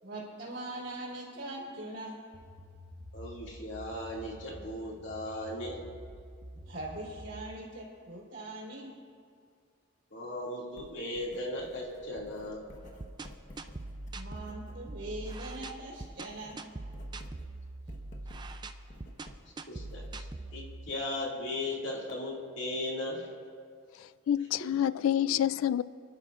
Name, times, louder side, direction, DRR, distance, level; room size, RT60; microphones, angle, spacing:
voice 1, 0.0-2.2 6.7-8.9 14.1-16.6, right 1 dB, 60° right, 3.6 m, -41 dB
sound 1, 2.3-7.5, equal, 90° right, 1.5 m, -48 dB
voice 2, 3.1-5.8 10.1-12.7 19.7-20.0 20.5-23.3, left 1 dB, 60° left, 2.3 m, -37 dB
Writing, 10.7-15.7 16.0-20.6, left 1 dB, 40° left, 1.2 m, -53 dB
sound 2, 12.7-20.9, right 2 dB, 20° right, 0.4 m, -43 dB
voice 3, 23.9-25.8, left 10 dB, 80° left, 0.3 m, -28 dB
29.5 x 11.5 x 2.5 m
head